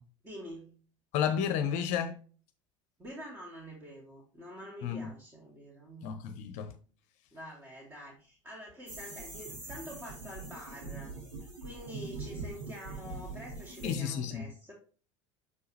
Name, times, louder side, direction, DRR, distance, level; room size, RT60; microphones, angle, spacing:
voice 1, 0.2-0.8 3.0-6.1 7.3-14.7, equal, 15° right, 2.5 m, -47 dB
voice 2, 1.1-2.1 4.8-5.0 6.0-6.7 13.8-14.5, left 8 dB, 50° left, 0.8 m, -31 dB
sound 1, 8.9-14.0, right 3 dB, 85° right, 2.5 m, -43 dB
6.8 x 4.6 x 3.3 m
figure-of-eight pair, 75°, 16 cm